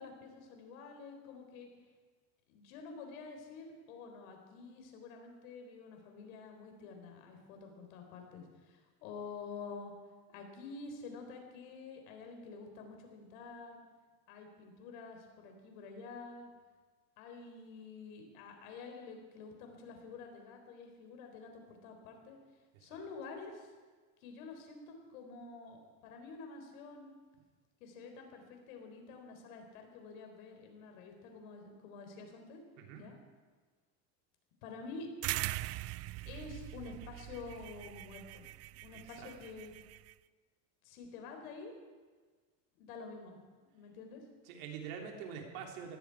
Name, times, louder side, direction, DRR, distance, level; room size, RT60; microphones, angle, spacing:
voice 1, 0.0-1.7 2.5-9.9 10.3-13.8 14.3-16.5 17.2-22.4 22.8-23.7 24.2-27.1 27.8-32.6 32.9-33.1 34.6-35.1 36.3-38.5 38.8-39.7 40.8-41.7 42.8-43.4 43.7-44.2, left 4 dB, 85° left, 4 dB, 4.1 m, -49 dB
voice 2, 22.7-23.1 32.8-33.0 39.2-39.3 44.5-46.0, right 7 dB, 80° right, 2 dB, 3.3 m, -45 dB
sound 1, 35.2-40.1, right 17 dB, 40° right, 0.4 m, -41 dB
18.5 x 15.0 x 4.8 m, 1.4 s
supercardioid pair, 125°, 40 cm